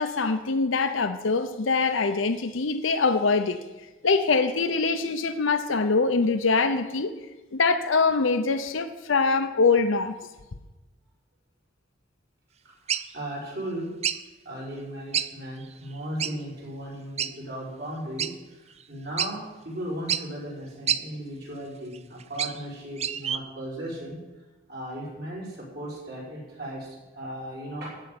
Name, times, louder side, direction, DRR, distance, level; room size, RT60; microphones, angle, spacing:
voice 1, 0.0-3.6 4.0-7.1 7.5-10.2, left 4 dB, 70° left, 8 dB, 0.7 m, -23 dB
voice 2, 12.6-13.9 14.5-18.3 18.6-24.2 24.7-27.9, right 1 dB, 55° right, -5 dB, 5.3 m, -36 dB
sound 1, 12.9-13.1 14.0-14.2 15.1-15.3 15.6-15.7 16.2-16.3 17.2-17.3 18.2-18.3 18.8-18.9 19.2-19.3 20.1-20.2 20.9-21.0 21.9-22.6 23.0-23.4, right 9 dB, 35° right, 0.5 m, -27 dB
15.0 x 5.4 x 9.4 m, 1.1 s
head